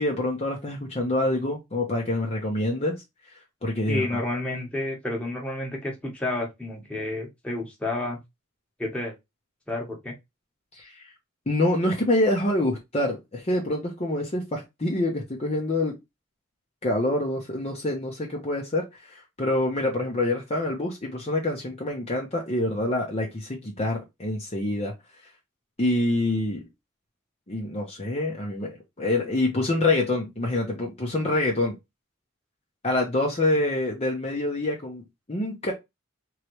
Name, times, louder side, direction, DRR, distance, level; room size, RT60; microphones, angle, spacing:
voice 1, 0.0-3.0 3.6-4.2 10.7-11.1 11.5-16.0 16.8-24.9 25.8-26.6 27.5-31.8 32.8-35.7, left 1 dB, 30° left, 0.9 m, -26 dB
voice 2, 3.9-8.2 8.8-9.1 9.7-10.1, left 2 dB, 5° left, 1.3 m, -30 dB
3.6 x 3.2 x 3.0 m
head